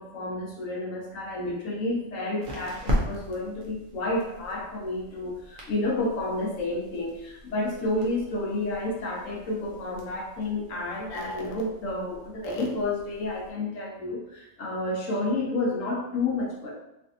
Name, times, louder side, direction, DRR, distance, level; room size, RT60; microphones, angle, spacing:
voice 1, 0.0-16.7, left 2 dB, 65° left, -1 dB, 1.0 m, -30 dB
sound 1, 1.1-13.5, equal, 50° right, 0.6 m, -38 dB
3.2 x 2.5 x 2.6 m, 0.87 s
omnidirectional pair, 1.5 m